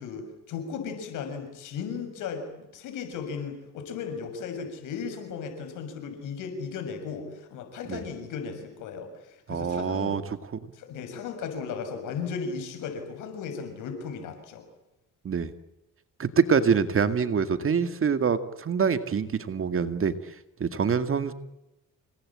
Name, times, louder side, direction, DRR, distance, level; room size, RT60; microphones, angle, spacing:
voice 1, 0.0-10.2 10.7-14.6, left 6 dB, 90° left, 7 dB, 6.7 m, -36 dB
voice 2, 9.5-10.2 15.2-15.5 16.2-20.1 20.6-21.3, right 6 dB, 45° right, 10 dB, 2.2 m, -25 dB
29.0 x 19.5 x 8.8 m, 0.94 s
cardioid pair, 90°, 30 cm